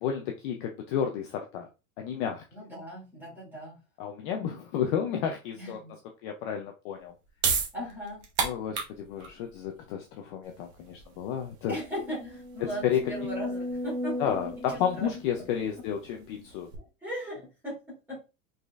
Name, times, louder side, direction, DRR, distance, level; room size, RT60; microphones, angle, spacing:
voice 1, 0.0-1.7 2.0-2.4 4.0-5.8 6.2-7.1 8.4-11.8 12.8-13.0 14.2-16.7, left 8 dB, 40° left, 4 dB, 0.5 m, -31 dB
voice 2, 2.5-3.8 5.5-5.9 7.7-8.3 11.7-14.2 14.7-15.1 15.4-15.5 16.8-18.2, equal, 5° right, -5 dB, 2.7 m, -38 dB
sound 1, 7.0-13.7, right 6 dB, 30° right, 0.9 m, -34 dB
sound 2, 10.7-10.8 11.2-11.3 11.8-16.1 16.7-16.8, left 1 dB, 50° right, 1.3 m, -37 dB
5.2 x 4.0 x 2.4 m, 0.29 s
supercardioid pair, 175°, 40 cm